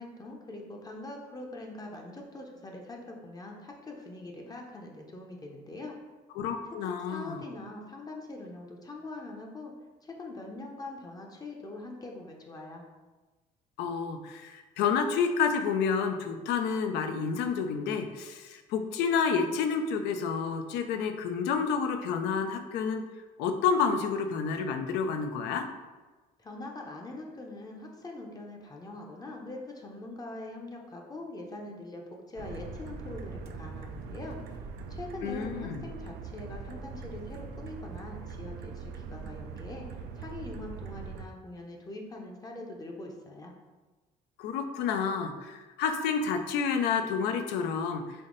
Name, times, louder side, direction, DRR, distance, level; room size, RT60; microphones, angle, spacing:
voice 1, 0.0-6.0 6.9-9.7 10.0-12.8 26.4-34.4 34.9-43.5, left 2 dB, 20° left, 0 dB, 0.6 m, -43 dB
voice 2, 6.4-7.4 13.8-23.0 23.4-25.7 35.2-35.8 44.4-48.0, left 6 dB, 85° left, 6 dB, 0.5 m, -29 dB
sound 1, 32.4-41.2, right 5 dB, 75° right, 0.4 m, -42 dB
3.5 x 2.7 x 3.8 m, 1.2 s
cardioid pair, 110°, 17 cm